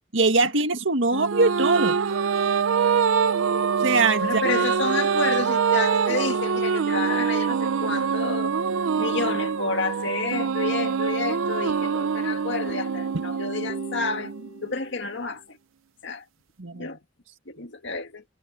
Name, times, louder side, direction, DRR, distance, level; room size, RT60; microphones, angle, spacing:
voice 1, 0.1-2.0 3.8-4.4 16.6-16.9, right 3 dB, 70° right, 1.8 m, -22 dB
sound 1, 1.1-14.7, right 6 dB, 90° right, 0.5 m, -25 dB
voice 2, 4.2-8.6 9.0-14.3 14.6-15.6 16.0-16.2 16.7-17.0 17.5-18.2, left 4 dB, 65° left, 2.1 m, -30 dB
sound 2, 10.7-15.4, left 1 dB, 40° left, 6.0 m, -46 dB
head